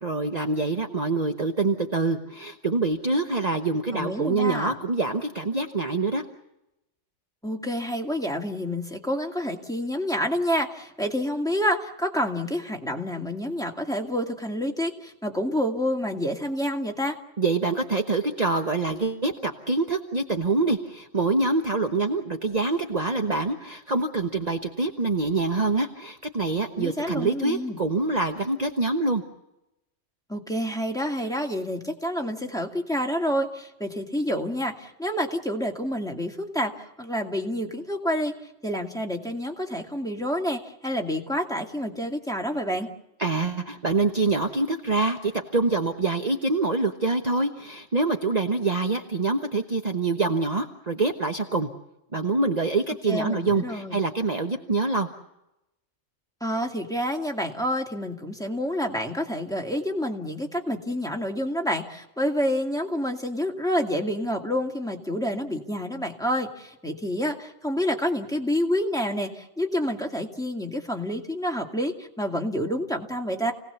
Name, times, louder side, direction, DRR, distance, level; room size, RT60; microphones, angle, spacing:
voice 1, 0.0-6.2 17.4-29.2 43.2-51.7 52.1-55.1, right 3 dB, 35° right, 4 dB, 1.2 m, -25 dB
voice 2, 3.9-4.7 7.4-17.2 26.8-27.8 30.3-38.3 38.6-42.9 53.1-54.0 56.4-73.5, equal, 5° left, 1 dB, 2.4 m, -28 dB
29.0 x 18.5 x 7.0 m, 0.90 s
omnidirectional pair, 1.2 m